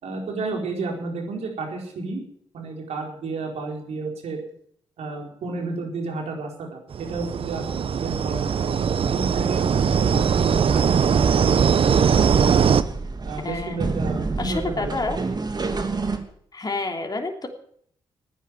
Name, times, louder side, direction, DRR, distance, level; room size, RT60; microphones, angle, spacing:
voice 1, 0.0-2.2 2.5-4.4 5.0-10.8 11.8-12.3 13.2-14.9, right 3 dB, 70° right, 1 dB, 4.7 m, -31 dB
sound 1, 6.9-12.8, right 7 dB, 55° right, 0.9 m, -20 dB
sound 2, 12.0-16.2, right 3 dB, 40° right, 2.8 m, -30 dB
voice 2, 13.4-13.8 14.4-15.2 16.5-17.5, left 3 dB, 35° left, 3 dB, 3.1 m, -28 dB
15.0 x 10.0 x 9.3 m, 0.64 s
hypercardioid pair, 45°, 11 cm